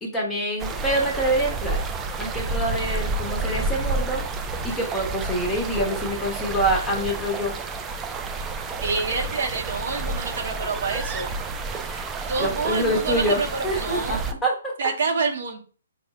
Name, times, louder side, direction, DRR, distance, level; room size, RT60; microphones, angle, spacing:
voice 1, 0.0-1.9 2.2-4.2 4.6-7.5 11.7-14.8, right 1 dB, 10° left, -2 dB, 1.0 m, -26 dB
sound 1, 0.6-14.3, right 3 dB, 15° right, 0.3 m, -30 dB
voice 2, 8.8-11.3 12.3-14.2 14.8-15.6, right 4 dB, 65° right, 4 dB, 0.7 m, -27 dB
4.3 x 2.1 x 3.6 m, 0.38 s
hypercardioid pair, 145°, 0 cm